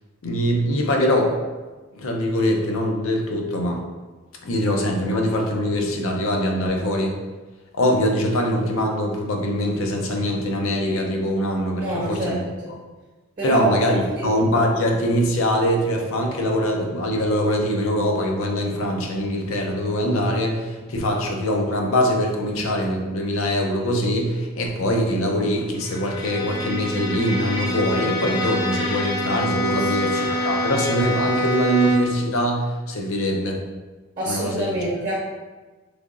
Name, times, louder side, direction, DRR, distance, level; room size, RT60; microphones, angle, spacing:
voice 1, 0.2-1.4 1.9-3.8 4.4-7.2 7.7-12.4 13.4-33.6 34.3-34.8, equal, 80° left, 2 dB, 0.6 m, -23 dB
voice 2, 11.8-12.7 13.4-13.7 14.2-14.3 29.7-30.2 34.2-35.1, right 2 dB, 40° right, -5 dB, 0.9 m, -26 dB
Bowed string instrument, 25.8-32.2, left 1 dB, 20° left, 0.4 m, -26 dB
3.6 x 3.3 x 2.5 m, 1.3 s
head